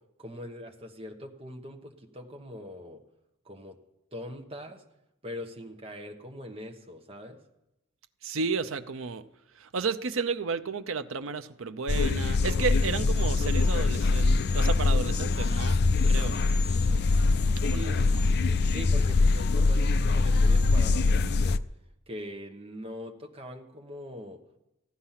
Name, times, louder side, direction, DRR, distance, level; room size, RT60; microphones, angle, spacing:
voice 1, 0.2-3.0 3.4-3.8 4.1-4.8 5.2-7.4 17.7-18.1 18.7-21.6 22.1-24.4, equal, 30° right, 1.2 m, -42 dB
voice 2, 8.2-9.2 9.5-15.8 16.1-16.4 17.6-17.9, right 4 dB, 75° right, 0.7 m, -32 dB
sound 1, 11.9-21.6, left 3 dB, 55° left, 0.4 m, -23 dB
15.5 x 10.5 x 5.8 m
head